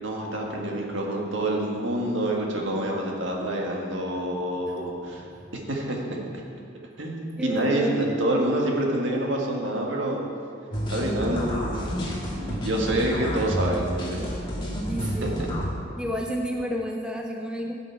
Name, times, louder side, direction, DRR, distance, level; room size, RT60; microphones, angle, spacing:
voice 1, 0.0-5.3 5.5-6.2 7.0-10.2 10.9-12.0 12.4-14.2 15.4-15.5, right 1 dB, 70° right, -1 dB, 1.7 m, -27 dB
voice 2, 4.7-5.2 7.4-8.6 14.9-15.5 16.0-17.7, equal, 5° right, 1 dB, 0.5 m, -32 dB
sound 1, 10.7-15.7, equal, 25° left, 1.7 m, -30 dB
16.0 x 6.3 x 4.6 m, 2.4 s
head